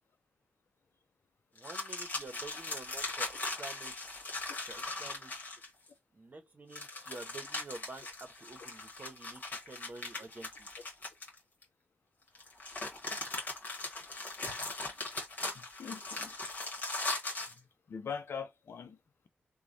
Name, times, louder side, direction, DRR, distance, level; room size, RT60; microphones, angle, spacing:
voice 1, 1.5-4.3 4.7-5.3 6.1-10.7, right 3 dB, 45° right, 0.9 m, -49 dB
sound 1, 1.6-5.9 6.7-11.6 12.4-17.6, left 2 dB, 45° left, 1.4 m, -39 dB
voice 2, 15.5-16.4 17.9-19.0, left 6 dB, 70° left, 0.5 m, -41 dB
3.2 x 2.2 x 2.6 m
cardioid pair, 65°, 4 cm